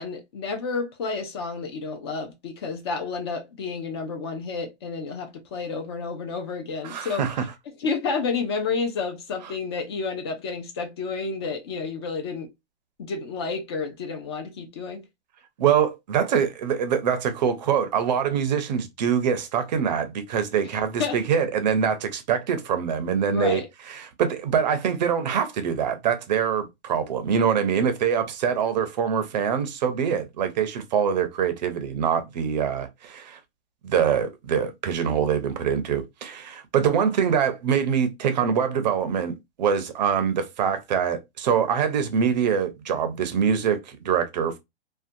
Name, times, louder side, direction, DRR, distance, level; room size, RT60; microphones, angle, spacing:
voice 1, 0.0-7.3 7.8-12.5 13.0-15.0 21.0-21.2 23.3-23.7, left 4 dB, 25° left, 0.4 m, -30 dB
voice 2, 6.8-7.4 15.6-23.6 23.9-33.4 33.8-44.6, right 7 dB, 40° right, 0.5 m, -24 dB
2.6 x 2.2 x 2.5 m
hypercardioid pair, 150°, 33 cm